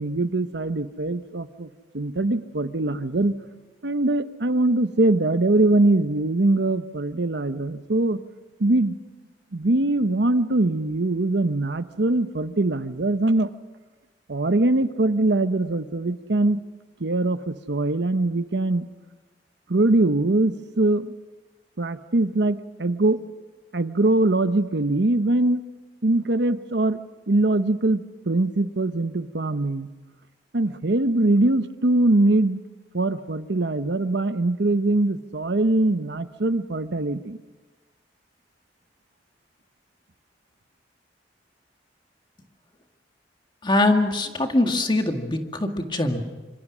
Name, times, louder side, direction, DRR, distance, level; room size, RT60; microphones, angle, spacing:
voice 1, 0.0-1.7 1.9-3.3 3.8-8.2 8.6-9.0 9.5-13.5 14.3-16.6 17.0-18.9 19.7-21.1 21.8-23.2 23.7-25.6 26.0-27.0 27.3-29.9 30.5-32.6 32.9-37.4, right 2 dB, 70° right, 11 dB, 0.9 m, -22 dB
voice 2, 43.6-46.2, left 2 dB, 25° left, 5 dB, 2.0 m, -22 dB
26.0 x 26.0 x 6.2 m, 1.2 s
head